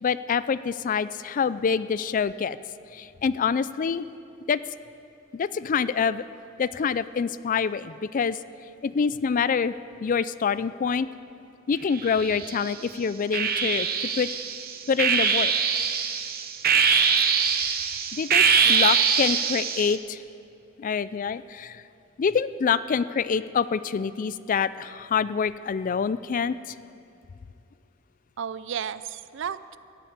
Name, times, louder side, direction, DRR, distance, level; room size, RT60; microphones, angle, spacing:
voice 1, 0.0-2.6 2.9-4.1 4.5-4.6 5.3-6.2 6.6-8.4 8.8-9.7 10.0-11.1 11.7-14.3 14.9-15.5 18.1-20.2 20.8-21.8 22.2-26.8, left 6 dB, 40° left, 16 dB, 0.3 m, -26 dB
sound 1, 11.9-12.7 13.3-20.0, right 6 dB, 50° right, 0.9 m, -23 dB
voice 2, 28.4-29.8, right 8 dB, 65° right, 15 dB, 0.4 m, -33 dB
16.0 x 7.9 x 8.7 m, 2.6 s
head